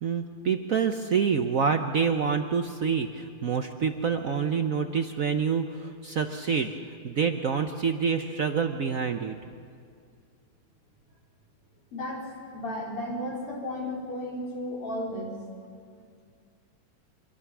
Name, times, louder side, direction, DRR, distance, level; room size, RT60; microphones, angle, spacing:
voice 1, 0.0-6.7 7.0-9.4, right 6 dB, 60° right, 6 dB, 0.8 m, -27 dB
voice 2, 11.9-15.4, left 1 dB, 85° left, -4 dB, 5.6 m, -34 dB
25.5 x 22.5 x 6.1 m, 2.2 s
omnidirectional pair, 2.4 m